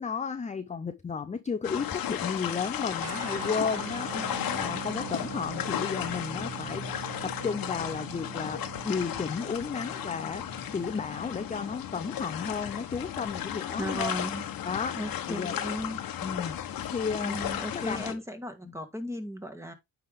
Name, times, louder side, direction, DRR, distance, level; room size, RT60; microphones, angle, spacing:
voice 1, 0.0-4.1 4.5-14.1 14.7-15.0 15.3-15.6 16.2-17.4 17.7-18.2, left 5 dB, 20° left, 0.5 m, -33 dB
sound 1, 1.6-18.1, left 10 dB, 75° left, 1.1 m, -35 dB
sound 2, 3.0-11.9, right 10 dB, 45° right, 0.6 m, -43 dB
voice 2, 4.0-4.6 13.7-14.5 15.0-16.0 17.2-19.7, equal, 10° right, 1.6 m, -36 dB
9.2 x 3.5 x 3.6 m
cardioid pair, 80°, 35 cm